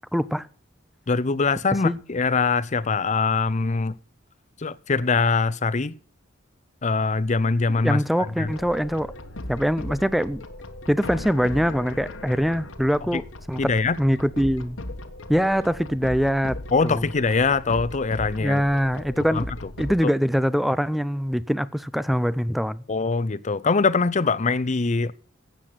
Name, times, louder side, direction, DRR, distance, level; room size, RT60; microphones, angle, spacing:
voice 1, 0.1-0.5 1.8-2.0 7.7-9.1 9.5-10.4 10.9-13.7 14.0-14.8 15.3-16.6 16.8-17.0 18.4-19.5 19.8-22.8, equal, ahead, 0.5 m, -23 dB
voice 2, 1.1-3.9 4.6-5.9 6.8-8.0 8.4-8.5 13.1-13.2 13.6-14.0 16.7-18.6 19.3-19.4 22.9-25.1, left 4 dB, 40° left, 0.7 m, -23 dB
sound 1, 8.4-20.0, left 1 dB, 80° left, 1.4 m, -38 dB
12.5 x 8.5 x 5.8 m
head